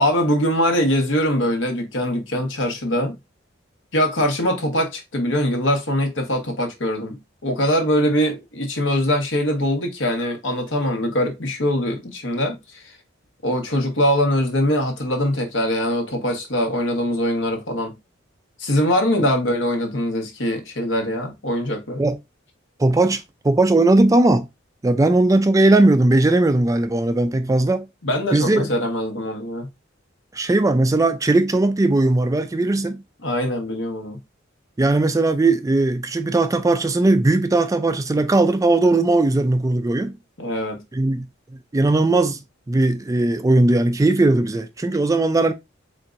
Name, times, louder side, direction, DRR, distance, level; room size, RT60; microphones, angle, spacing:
voice 1, 0.0-3.1 3.9-12.8 13.4-17.9 18.6-22.0 28.0-29.7 33.2-34.2 40.4-40.8, equal, 70° left, 1.2 m, -22 dB
voice 2, 22.8-24.5 24.8-27.9 28.3-28.6 30.3-33.0 34.8-40.1 40.9-41.3 41.7-42.4 42.7-45.5, right 2 dB, 15° right, 0.4 m, -18 dB
4.4 x 3.7 x 2.5 m
head